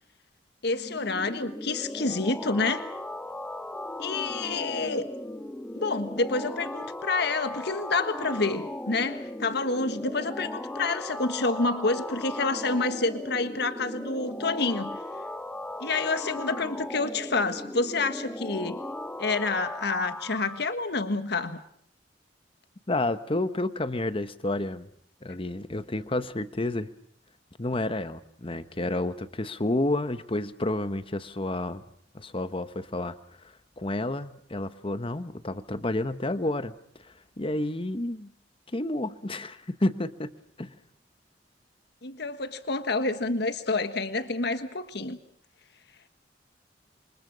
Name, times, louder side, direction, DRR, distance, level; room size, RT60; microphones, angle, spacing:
voice 1, 0.6-2.9 4.0-5.1 5.7-15.0 15.8-18.8 19.2-21.6 42.0-45.2, left 3 dB, 65° left, 10 dB, 1.5 m, -28 dB
sound 1, 0.7-20.6, left 1 dB, 10° left, 1.5 m, -37 dB
voice 2, 22.9-24.9 25.2-26.9 27.6-31.8 32.1-33.2 33.8-36.7 37.0-38.3 38.7-40.7, left 2 dB, 30° left, 12 dB, 1.1 m, -30 dB
28.0 x 24.5 x 6.3 m, 0.64 s
head